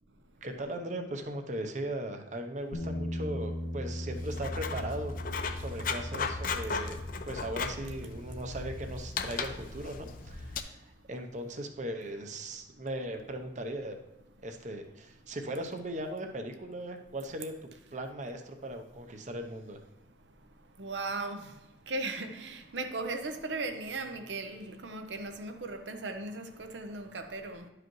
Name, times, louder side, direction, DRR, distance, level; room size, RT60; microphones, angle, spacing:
voice 1, 0.4-5.1 5.5-10.6 11.1-14.0 14.4-19.8, right 1 dB, 45° right, 0.7 m, -38 dB
Bass guitar, 2.7-9.0, left 1 dB, 90° left, 0.9 m, -39 dB
Writing, 4.1-10.6, left 5 dB, 50° left, 0.5 m, -37 dB
voice 2, 20.3-27.7, right 3 dB, 85° right, 0.8 m, -38 dB
11.0 x 4.9 x 3.1 m
head